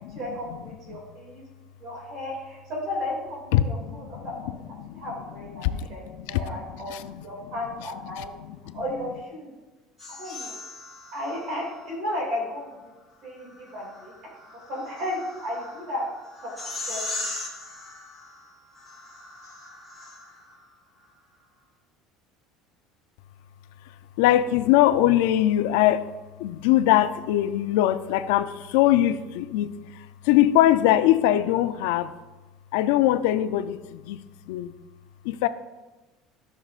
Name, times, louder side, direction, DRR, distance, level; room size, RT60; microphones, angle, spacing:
voice 1, 0.1-1.4 1.8-4.5 4.9-6.0 6.3-8.3 8.7-9.5 10.2-10.6 11.1-12.7 13.2-14.1 14.5-16.0 16.4-17.3, left 1 dB, 45° right, -2 dB, 2.3 m, -34 dB
voice 2, 3.5-4.3 4.8-5.0 5.6-5.9 6.1-7.2 8.1-8.8 24.2-26.1 26.4-32.1 32.7-34.7 35.2-35.5, left 13 dB, 80° left, 13 dB, 0.4 m, -22 dB
sound 1, 10.0-11.9 13.4-20.6, left 2 dB, 5° right, 2.5 m, -39 dB
13.5 x 6.3 x 2.4 m, 1.1 s
cardioid pair, 180°, 0 cm